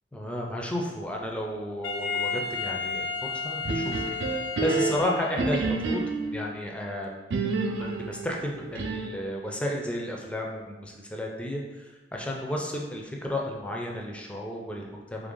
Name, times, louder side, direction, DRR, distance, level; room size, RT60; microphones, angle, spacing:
voice 1, 0.1-3.1 3.4-4.0 4.6-7.1 7.7-11.6 12.1-15.3, left 1 dB, 5° left, -1 dB, 0.4 m, -32 dB
Wind instrument woodwind instrument, 1.8-5.8, left 5 dB, 80° left, 0.4 m, -33 dB
sound 1, 3.6-6.4 7.3-9.3, right 3 dB, 70° right, 0.4 m, -29 dB
3.2 x 2.5 x 3.7 m, 1.2 s
head